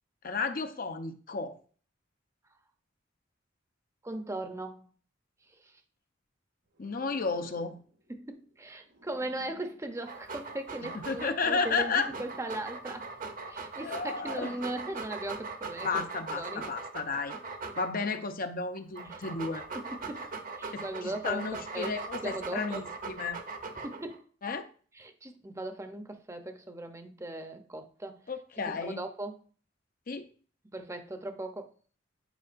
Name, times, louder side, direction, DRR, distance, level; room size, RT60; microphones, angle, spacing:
voice 1, 0.2-1.6 6.8-7.8 10.8-12.1 13.8-14.6 15.8-17.3 17.8-19.6 20.7-23.4 24.4-24.6 28.3-29.0 30.1-30.3, left 4 dB, 50° left, 0.7 m, -33 dB
voice 2, 4.0-4.9 8.1-13.1 13.5-16.0 16.3-16.6 19.1-19.2 19.7-20.2 20.6-21.9 22.2-22.8 23.8-24.2 25.0-28.2 28.7-29.4 30.7-31.7, right 1 dB, 15° right, 0.7 m, -38 dB
sound 1, 6.7-10.9 11.6-15.6, right 1 dB, 75° right, 1.3 m, -58 dB
Dog, 10.0-18.2 18.8-24.2, right 4 dB, 45° right, 0.8 m, -40 dB
10.5 x 4.7 x 2.5 m
head